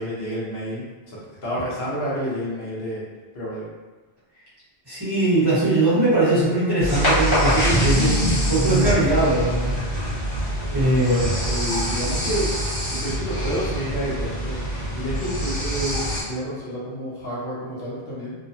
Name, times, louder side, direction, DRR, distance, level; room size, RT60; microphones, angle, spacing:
voice 1, 0.0-3.0 3.3-3.7 10.9-12.5 12.9-14.6 14.9-16.0 16.2-18.3, equal, 70° left, -7 dB, 1.0 m, -29 dB
voice 2, 4.9-9.9 10.7-11.2, right 1 dB, 25° right, -12 dB, 1.1 m, -21 dB
sound 1, 6.8-16.2, equal, 55° left, 1.5 m, -24 dB
2.7 x 2.2 x 2.6 m, 1.3 s
omnidirectional pair, 1.0 m